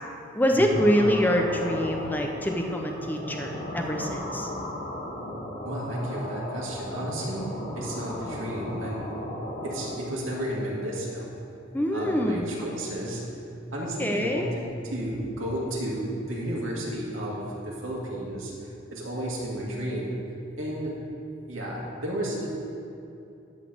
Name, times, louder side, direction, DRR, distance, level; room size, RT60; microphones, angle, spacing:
voice 1, 0.3-4.5 11.7-12.5 13.8-14.5, equal, 10° left, 2 dB, 0.6 m, -25 dB
sound 1, 0.7-9.9, left 1 dB, 50° left, 2.2 m, -36 dB
voice 2, 5.6-9.3 9.6-11.3 11.9-13.3 13.7-18.5 18.9-20.1 20.6-20.9 21.5-22.5, right 1 dB, 90° right, -4 dB, 2.2 m, -32 dB
12.0 x 4.1 x 7.6 m, 2.7 s
head